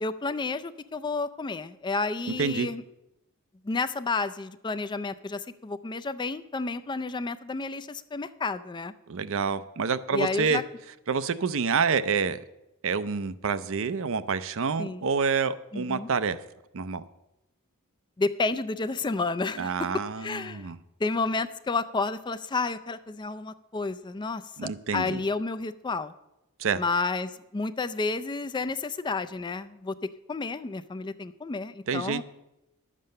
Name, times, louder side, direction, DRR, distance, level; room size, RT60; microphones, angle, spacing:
voice 1, 0.0-2.8 3.6-8.9 10.1-10.6 14.8-15.0 15.7-16.1 18.2-19.9 20.2-20.7 21.0-26.1 26.8-29.9 30.3-32.2, left 3 dB, 20° left, 12 dB, 0.4 m, -31 dB
voice 2, 9.1-10.6 11.1-12.4 12.8-16.4 16.7-17.0 19.6-20.8 24.6-25.2 26.6-26.8 31.9-32.2, right 5 dB, 60° right, 13 dB, 0.6 m, -27 dB
11.5 x 7.5 x 6.6 m, 0.91 s
head